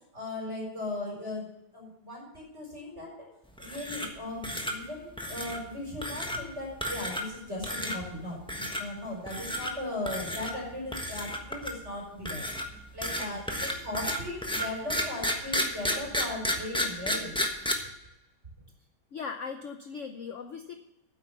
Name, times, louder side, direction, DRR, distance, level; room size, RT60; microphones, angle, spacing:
voice 1, 0.1-1.5 1.7-3.1 3.6-12.5 12.9-17.3, left 1 dB, 30° right, -3 dB, 4.9 m, -37 dB
sound 1, 3.6-4.2 4.4-4.7 5.2-5.6 6.0-6.4 6.8-7.3 7.6-8.0 8.5-8.8 9.3-9.7 10.1-10.5 10.9-11.8 12.3-17.7, equal, 5° left, 0.8 m, -32 dB
voice 2, 19.1-20.7, left 5 dB, 70° left, 6 dB, 0.7 m, -39 dB
9.5 x 8.3 x 7.0 m, 0.93 s
omnidirectional pair, 2.2 m